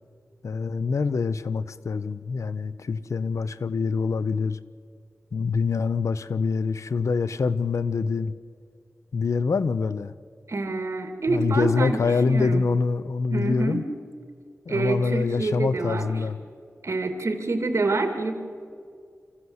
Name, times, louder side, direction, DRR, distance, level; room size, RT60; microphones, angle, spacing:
voice 1, 0.4-4.6 5.3-8.3 9.1-10.1 11.3-13.8 14.7-16.4, left 4 dB, 85° left, 0.7 m, -25 dB
voice 2, 10.5-12.6 13.3-13.8 14.7-16.2 16.8-18.3, right 3 dB, 65° right, 2.5 m, -27 dB
25.5 x 14.5 x 8.0 m
wide cardioid pair, 70°, 5 cm